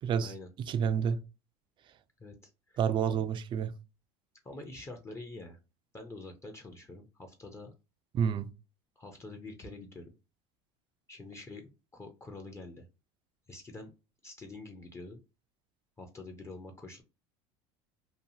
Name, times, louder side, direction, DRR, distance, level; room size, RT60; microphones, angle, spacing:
voice 1, 0.0-1.2 2.8-3.7 8.1-8.5, right 7 dB, 35° right, 0.4 m, -29 dB
voice 2, 2.2-2.8 3.1-3.2 4.4-5.6 5.9-7.7 9.0-10.1 11.1-12.9 13.5-13.9 14.2-15.2 16.0-17.0, left 2 dB, 20° left, 0.5 m, -46 dB
2.7 x 2.3 x 2.7 m
supercardioid pair, 105°, 14 cm